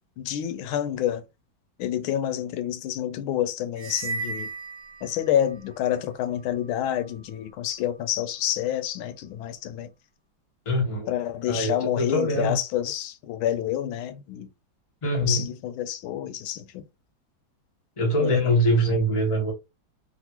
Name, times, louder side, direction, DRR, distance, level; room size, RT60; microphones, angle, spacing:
voice 1, 0.2-1.2 1.8-4.5 5.0-9.9 11.1-14.5 15.2-16.8 18.2-18.5, left 11 dB, 85° left, 1.4 m, -28 dB
sound 1, 3.8-5.6, right 4 dB, 70° right, 1.0 m, -35 dB
voice 2, 10.6-11.1 11.5-12.6 15.0-15.4 18.0-19.5, equal, 25° left, 0.8 m, -23 dB
3.4 x 2.5 x 2.9 m
omnidirectional pair, 2.2 m